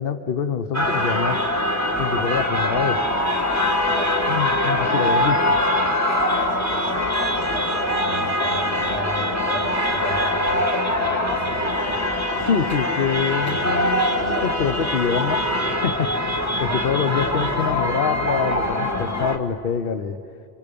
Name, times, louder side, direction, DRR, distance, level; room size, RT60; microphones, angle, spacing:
voice 1, 0.0-1.4 1.9-3.0 4.3-5.6 12.3-20.2, left 7 dB, 65° left, 9 dB, 1.0 m, -25 dB
sound 1, 0.7-19.4, left 1 dB, 15° left, 1.5 m, -23 dB
voice 2, 4.0-4.4 6.1-11.8 16.5-16.8 17.1-17.2, left 1 dB, 85° left, -3 dB, 5.6 m, -34 dB
29.5 x 26.5 x 5.2 m, 2.7 s
omnidirectional pair, 1.1 m